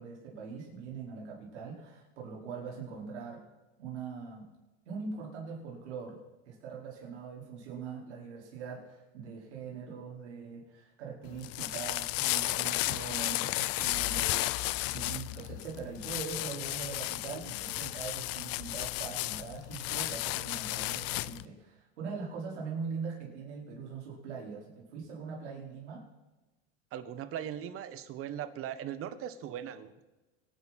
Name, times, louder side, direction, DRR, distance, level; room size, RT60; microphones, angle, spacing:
voice 1, 0.0-3.4 3.8-4.4 4.8-6.2 6.5-26.0, right 5 dB, 90° right, -2 dB, 4.9 m, -42 dB
sound 1, 11.2-21.5, left 18 dB, 45° left, 0.6 m, -33 dB
voice 2, 26.9-30.0, right 10 dB, 40° right, 12 dB, 1.5 m, -39 dB
25.5 x 11.0 x 4.3 m, 1.1 s
supercardioid pair, 120°, 33 cm